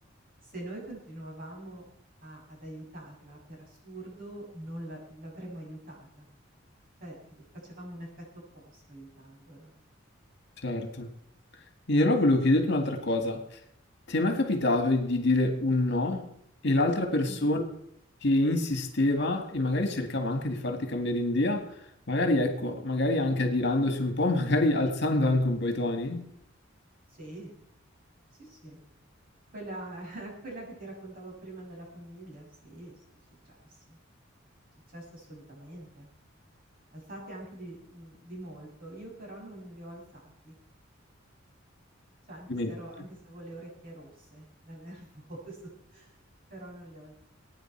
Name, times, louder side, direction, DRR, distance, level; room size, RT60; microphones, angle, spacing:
voice 1, 0.4-1.8 2.2-6.3 7.0-9.7 17.2-17.5 27.1-27.5 28.4-28.8 29.5-32.9 33.6-34.0 34.9-36.1 36.9-40.6 42.2-46.2 46.5-47.3, right 1 dB, 45° right, -2 dB, 7.0 m, -44 dB
voice 2, 10.6-11.1 11.9-13.4 14.1-16.3 16.6-17.6 18.2-21.7 22.1-26.3 42.5-42.7, left 2 dB, 60° left, 5 dB, 2.0 m, -26 dB
22.0 x 9.4 x 4.6 m, 0.71 s
head